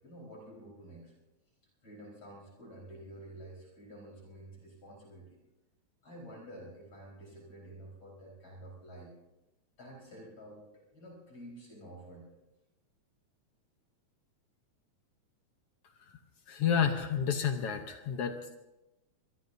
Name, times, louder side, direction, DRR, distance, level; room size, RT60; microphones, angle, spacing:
voice 1, 0.0-1.1 1.8-5.4 6.0-9.1 9.8-10.6 10.9-12.3, right 1 dB, 40° left, -3 dB, 5.3 m, -49 dB
voice 2, 16.5-18.6, left 7 dB, 65° left, 6 dB, 1.7 m, -30 dB
24.0 x 22.0 x 2.7 m, 0.99 s
omnidirectional pair, 3.3 m